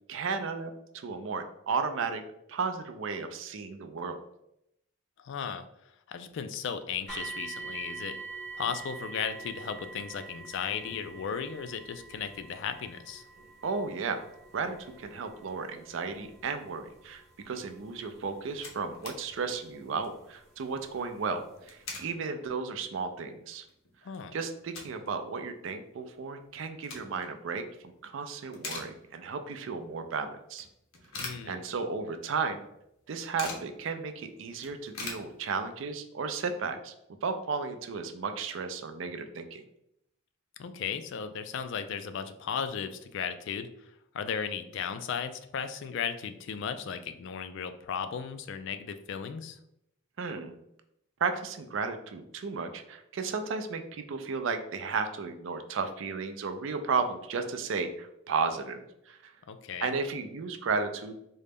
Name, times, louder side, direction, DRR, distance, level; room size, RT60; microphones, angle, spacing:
voice 1, 0.1-2.2 2.5-4.2 13.6-14.2 14.5-23.6 24.3-30.7 31.4-32.6 33.1-36.9 37.2-39.6 50.2-50.5 51.2-59.3 59.8-61.2, right 5 dB, 65° right, 8 dB, 0.4 m, -34 dB
voice 2, 5.2-5.7 6.1-8.2 8.6-13.2 24.0-24.4 31.2-31.6 40.6-43.7 44.1-49.6 59.5-59.9, left 7 dB, 60° left, 9 dB, 0.3 m, -35 dB
sound 1, 7.1-20.0 20.8-20.9 21.5-21.6, right 4 dB, ahead, 1.0 m, -45 dB
sound 2, 18.3-19.2 19.6-19.7 19.9-20.2 21.4-22.1 22.7-22.8 23.3-23.4 23.7-25.1 25.4-25.5 26.5-27.4 27.8-28.1 28.4-29.4 29.8-29.9 30.6-32.1 32.4-32.5 32.7-33.7 34.1-34.2 34.4-35.9, left 3 dB, 80° left, 0.8 m, -42 dB
3.8 x 2.2 x 3.4 m, 0.79 s
head